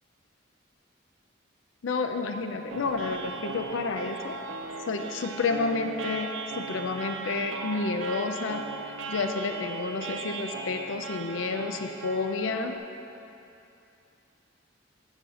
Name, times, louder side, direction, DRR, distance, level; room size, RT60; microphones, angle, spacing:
voice 1, 1.8-4.4 4.9-12.8, left 4 dB, 80° left, 6 dB, 0.5 m, -30 dB
sound 1, 2.7-12.8, right 5 dB, 85° right, 0.5 m, -38 dB
7.3 x 4.8 x 6.2 m, 2.8 s
head